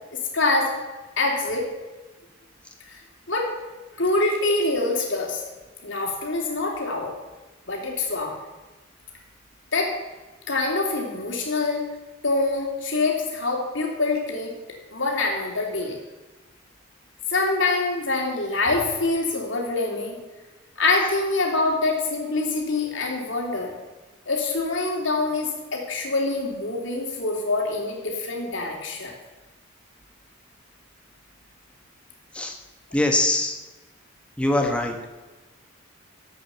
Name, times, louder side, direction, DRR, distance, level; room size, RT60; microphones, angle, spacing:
voice 1, 0.1-0.7 1.2-1.7 2.9-3.0 3.3-3.5 4.0-5.4 5.8-7.1 7.7-8.4 9.7-9.9 10.5-11.9 12.2-14.5 14.9-16.0 17.3-20.2 20.8-23.7 24.3-29.1, left 3 dB, 60° left, 0 dB, 3.0 m, -25 dB
voice 2, 32.9-33.6 34.4-34.9, left 1 dB, 5° left, 3 dB, 1.2 m, -22 dB
13.5 x 8.5 x 7.0 m, 1.2 s
head